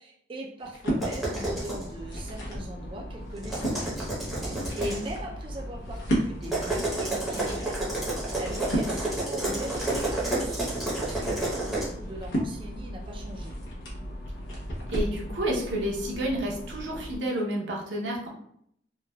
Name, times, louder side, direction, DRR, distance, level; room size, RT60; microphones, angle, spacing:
voice 1, 0.0-4.0 4.3-13.6, right 1 dB, 30° right, -1 dB, 0.3 m, -40 dB
sound 1, 0.6-1.1 1.8-2.7 3.2-3.8 4.4-15.2, equal, 80° left, 0.9 m, -34 dB
sound 2, 1.0-1.8 3.4-5.1 6.4-11.8, right 2 dB, ahead, 0.7 m, -30 dB
sound 3, 1.4-17.2, equal, 55° left, 0.3 m, -40 dB
voice 2, 14.9-18.3, right 1 dB, 85° right, -2 dB, 0.7 m, -30 dB
3.1 x 2.2 x 2.2 m, 0.69 s
head